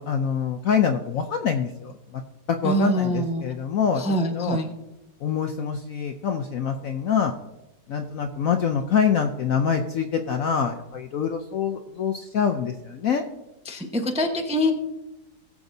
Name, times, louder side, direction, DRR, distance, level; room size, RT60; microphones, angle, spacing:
voice 1, 0.0-2.2 2.5-4.6 5.2-7.3 7.9-13.2, left 7 dB, 65° left, 5 dB, 0.8 m, -25 dB
voice 2, 2.6-3.4 4.0-4.7 13.7-14.7, equal, 5° right, 2 dB, 0.6 m, -24 dB
20.0 x 7.2 x 2.7 m, 0.97 s
omnidirectional pair, 2.0 m